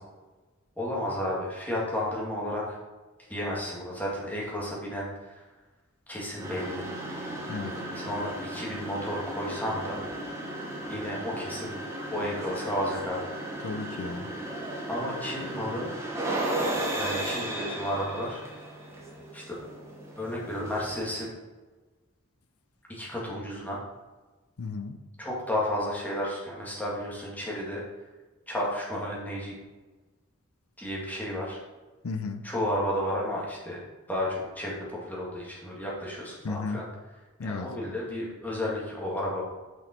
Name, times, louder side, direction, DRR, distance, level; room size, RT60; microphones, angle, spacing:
voice 1, 0.8-2.8 3.3-5.4 6.1-6.9 7.9-10.1 10.9-11.7 12.1-13.3 14.9-15.9 17.0-18.4 19.3-19.5 20.2-21.3 22.9-23.8 25.2-27.8 28.5-29.6 30.8-31.6 32.4-33.8 34.1-36.8 37.4-39.4, left 1 dB, 10° left, -5 dB, 1.9 m, -32 dB
sound 1, 6.4-21.3, right 1 dB, 15° right, 1.2 m, -35 dB
voice 2, 7.5-7.9 13.6-14.3 24.6-25.0 32.0-32.5 36.4-36.8 37.4-37.7, left 3 dB, 85° left, 10 dB, 0.6 m, -34 dB
6.3 x 5.4 x 4.3 m, 1.2 s
head